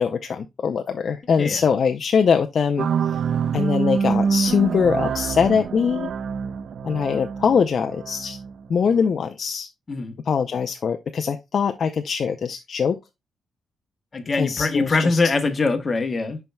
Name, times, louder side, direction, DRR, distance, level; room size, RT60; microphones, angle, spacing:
voice 1, 0.0-2.9 3.5-6.1 6.8-8.4 8.7-9.7 10.3-13.0 14.4-15.2, left 6 dB, 40° left, 0.5 m, -22 dB
sound 1, 2.8-9.1, right 6 dB, 50° right, 0.4 m, -26 dB
voice 2, 14.1-16.4, left 3 dB, 25° left, 1.0 m, -22 dB
11.0 x 4.5 x 2.2 m
wide cardioid pair, 180°, 0 cm